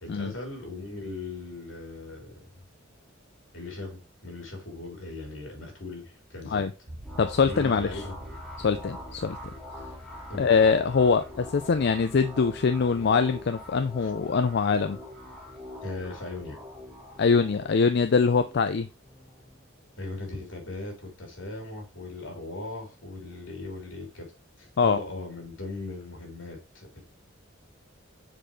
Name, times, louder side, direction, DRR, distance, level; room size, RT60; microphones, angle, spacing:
voice 1, 0.0-2.5 3.5-6.7 7.4-8.2 8.6-8.8 10.3-10.5 14.0-14.1 15.8-16.6 20.0-24.3 24.6-27.0, left 2 dB, 85° left, 3.1 m, -38 dB
sound 1, 6.9-18.8, right 1 dB, 50° right, 1.2 m, -48 dB
sound 2, 7.0-20.3, left 1 dB, ahead, 1.7 m, -45 dB
voice 2, 7.2-7.9 8.6-9.4 10.4-15.0 17.2-18.9 24.8-25.0, left 5 dB, 60° left, 0.4 m, -23 dB
7.6 x 4.5 x 3.1 m
head